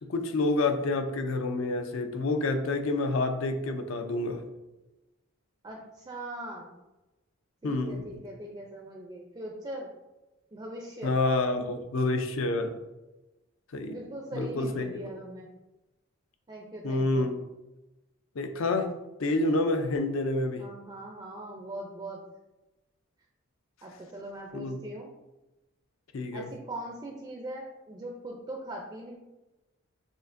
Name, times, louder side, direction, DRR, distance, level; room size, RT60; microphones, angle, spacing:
voice 1, 0.0-4.4 7.6-8.2 11.0-12.8 13.7-14.0 14.3-14.9 16.8-17.4 18.4-18.9 19.2-20.6 24.5-24.8 26.1-26.5, left 2 dB, 70° left, 6 dB, 0.5 m, -28 dB
voice 2, 5.6-6.7 7.6-9.9 10.5-11.1 13.9-15.5 16.5-17.3 20.6-22.2 23.8-25.1 26.3-29.2, right 1 dB, 20° right, -1 dB, 0.4 m, -41 dB
6.4 x 2.5 x 2.5 m, 1.0 s
head